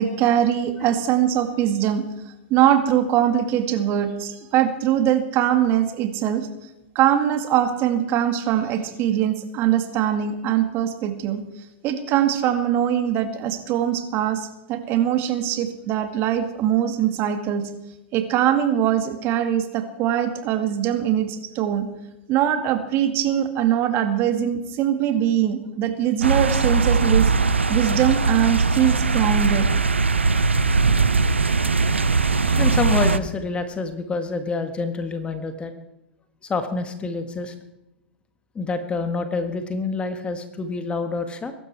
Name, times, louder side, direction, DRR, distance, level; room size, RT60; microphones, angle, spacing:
voice 1, 0.0-2.0 2.5-6.5 7.0-11.4 11.8-17.7 18.1-21.9 22.3-27.3 27.7-29.7, right 10 dB, 40° right, 7 dB, 2.2 m, -22 dB
sound 1, 26.2-33.2, right 4 dB, 85° right, 0.8 m, -20 dB
voice 2, 30.7-35.7 36.5-37.5 38.5-41.5, left 3 dB, 15° left, 8 dB, 1.6 m, -28 dB
22.0 x 12.0 x 4.7 m, 0.93 s
figure-of-eight pair, 100°, 6 cm